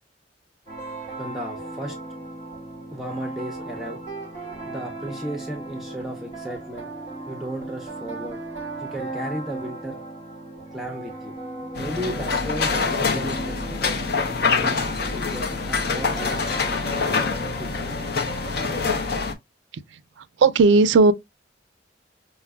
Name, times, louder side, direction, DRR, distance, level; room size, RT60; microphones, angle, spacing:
sound 1, 0.7-19.2, right 2 dB, 40° left, 1.8 m, -37 dB
voice 1, 1.2-2.0 2.9-4.0 4.6-6.9 7.3-8.4 8.8-10.0 10.7-11.3 11.8-14.0 14.4-16.8 17.6-17.7, equal, ahead, 0.5 m, -35 dB
sound 2, 11.8-19.3, left 4 dB, 60° left, 0.7 m, -25 dB
voice 2, 20.4-21.1, right 3 dB, 75° right, 0.4 m, -15 dB
5.6 x 2.0 x 2.2 m
head